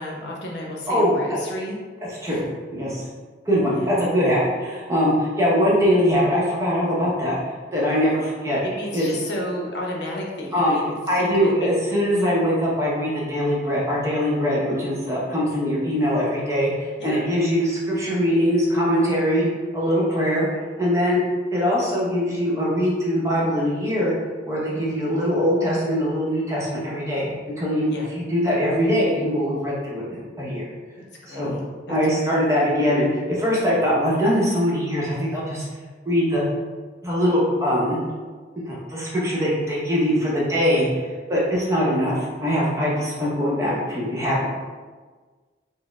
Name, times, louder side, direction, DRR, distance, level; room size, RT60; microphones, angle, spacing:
voice 1, 0.0-1.8 2.2-2.4 3.7-4.2 8.6-11.7 17.0-17.2 27.9-28.1 31.2-31.6 31.9-32.4, left 1 dB, 70° left, -2 dB, 0.7 m, -32 dB
voice 2, 2.7-3.0 3.5-8.6 8.9-9.1 10.5-10.8 11.1-19.5 19.7-20.5 20.8-21.2 21.5-24.1 24.4-30.6 31.3-31.6 31.9-35.7 36.1-36.4 37.0-38.0 38.7-44.5, equal, 15° right, -6 dB, 0.7 m, -22 dB
4.2 x 2.0 x 3.4 m, 1.4 s
head